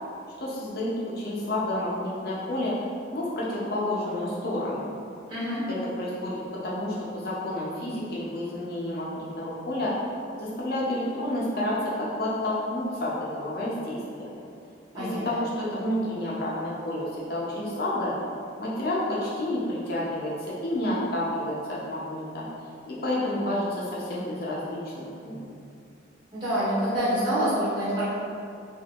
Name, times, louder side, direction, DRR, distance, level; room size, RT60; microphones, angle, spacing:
voice 1, 0.4-4.9 5.7-10.0 10.4-14.3 14.9-18.2 18.6-22.4 22.9-25.5, left 1 dB, 55° left, -6 dB, 0.6 m, -30 dB
voice 2, 5.3-5.6 14.9-15.2 26.3-28.0, equal, 25° right, -12 dB, 1.3 m, -26 dB
3.4 x 2.6 x 2.4 m, 2.4 s
head